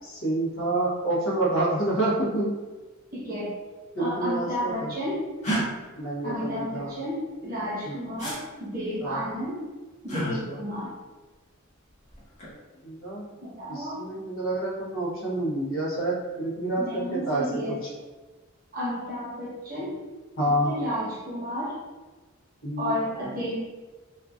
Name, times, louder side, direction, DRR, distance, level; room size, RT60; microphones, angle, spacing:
voice 1, 0.1-2.5 3.9-4.9 6.0-6.9 7.8-8.0 9.0-9.2 10.4-10.6 12.8-13.3 13.7-17.7 20.4-20.7 22.6-22.9, right 1 dB, 65° left, -6 dB, 0.9 m, -28 dB
voice 2, 3.1-3.5 4.0-5.3 6.2-9.6 10.0-10.9 13.4-14.0 16.8-17.8 18.7-19.9 20.5-21.8 22.8-23.6, equal, 40° right, -6 dB, 1.0 m, -32 dB
sound 1, 5.4-5.6 8.2-8.4 10.1-10.3 12.1-12.5, right 1 dB, 35° left, 0.9 m, -29 dB
3.0 x 2.4 x 2.4 m, 1.3 s
head